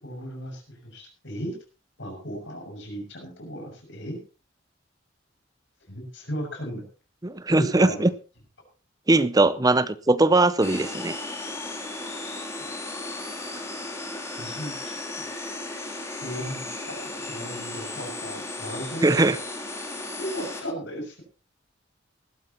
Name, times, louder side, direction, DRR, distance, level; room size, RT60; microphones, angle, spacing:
voice 1, 0.0-1.6 2.0-4.2 5.9-6.8 7.5-8.1 14.4-15.2 16.2-17.0 17.3-19.1 20.1-21.2, equal, 65° left, 2 dB, 6.7 m, -36 dB
voice 2, 7.2-8.1 9.1-11.2 19.0-19.4, right 2 dB, 20° right, 15 dB, 0.6 m, -20 dB
sound 1, 10.6-20.6, left 2 dB, 15° left, 3.2 m, -35 dB
19.5 x 13.5 x 3.0 m, 0.33 s
head